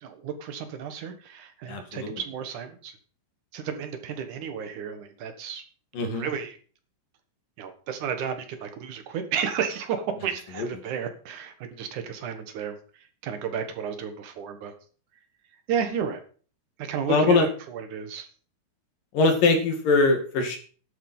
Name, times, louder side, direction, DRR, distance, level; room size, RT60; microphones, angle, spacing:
voice 1, 0.0-2.9 3.5-5.6 6.1-6.6 7.6-12.8 13.2-14.7 15.7-16.2 16.8-18.3, right 7 dB, 70° right, 8 dB, 3.0 m, -32 dB
voice 2, 1.7-2.2 5.9-6.3 10.6-10.7 17.1-17.5 19.1-20.6, left 3 dB, 80° left, 4 dB, 4.1 m, -22 dB
11.5 x 8.9 x 5.6 m, 0.41 s
omnidirectional pair, 3.8 m